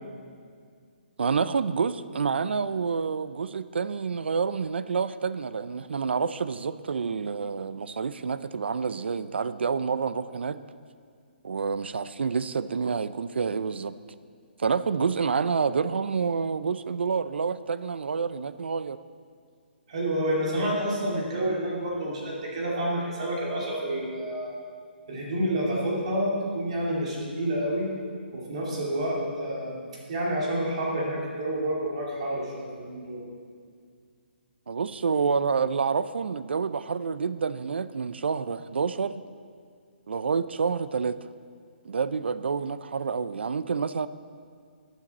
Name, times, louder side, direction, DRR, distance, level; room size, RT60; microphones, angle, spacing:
voice 1, 1.2-10.6 11.4-14.0 14.6-19.0 34.7-39.2 40.1-41.3 41.8-44.1, right 5 dB, 75° right, 14 dB, 0.5 m, -28 dB
voice 2, 19.9-24.5 25.1-27.9 28.3-29.8 30.1-33.2, right 1 dB, 35° right, -3 dB, 2.5 m, -29 dB
15.5 x 9.3 x 4.2 m, 2.1 s
hypercardioid pair, 175°, 6 cm